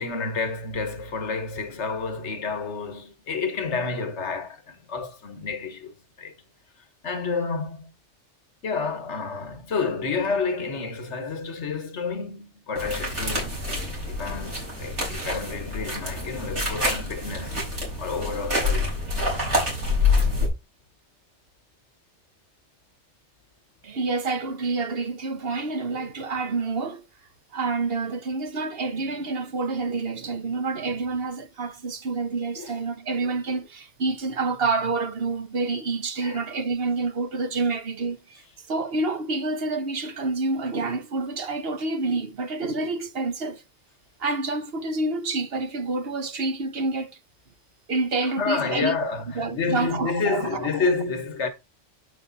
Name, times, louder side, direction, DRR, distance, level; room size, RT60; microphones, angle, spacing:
voice 1, 0.0-6.3 7.0-7.9 8.6-13.6 14.1-17.7 18.0-19.5 32.6-32.8 33.2-33.3 36.2-36.4 48.2-51.5, left 4 dB, 75° left, 1.6 m, -30 dB
sound 1, 12.8-20.5, left 2 dB, 85° right, 4.8 m, -27 dB
voice 2, 23.8-27.0 27.5-38.4 38.7-43.6 44.2-47.2 47.9-50.7, right 3 dB, 60° right, 1.3 m, -28 dB
9.5 x 5.2 x 4.0 m
omnidirectional pair, 1.2 m